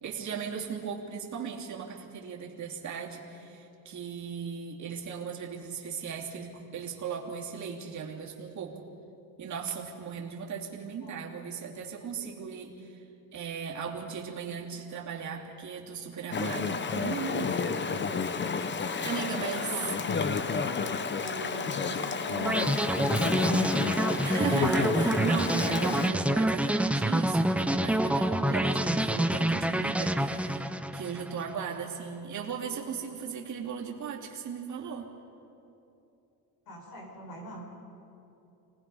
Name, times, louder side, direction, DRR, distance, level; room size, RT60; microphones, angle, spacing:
voice 1, 0.0-8.8 9.4-13.0 13.3-17.6 19.0-19.7 24.2-35.1, right 6 dB, 45° right, -2 dB, 2.8 m, -37 dB
Chatter / Stream, 16.3-26.1, left 5 dB, 30° left, 0.9 m, -31 dB
voice 2, 19.2-20.5 20.7-24.1 36.7-37.7, left 1 dB, 65° left, -1 dB, 6.3 m, -42 dB
sound 1, 22.4-31.5, right 1 dB, 5° right, 0.6 m, -27 dB
26.5 x 19.0 x 5.5 m, 2.8 s
cardioid pair, 125°, 38 cm